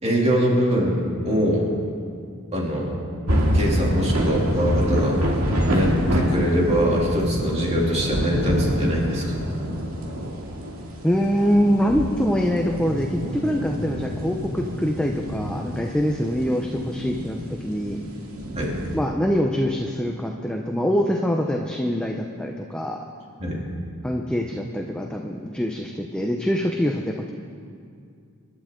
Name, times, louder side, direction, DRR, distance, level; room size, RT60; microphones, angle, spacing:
voice 1, 0.0-1.7 2.5-3.0 3.5-5.2 5.7-9.3 18.6-18.7 23.4-23.6, equal, 30° right, -2 dB, 2.8 m, -23 dB
sound 1, 3.3-19.0, equal, 80° right, 2.3 m, -27 dB
voice 2, 11.0-18.0 18.9-23.0 24.0-27.3, equal, 5° left, 1 dB, 0.7 m, -24 dB
26.5 x 11.5 x 3.8 m, 2.3 s
head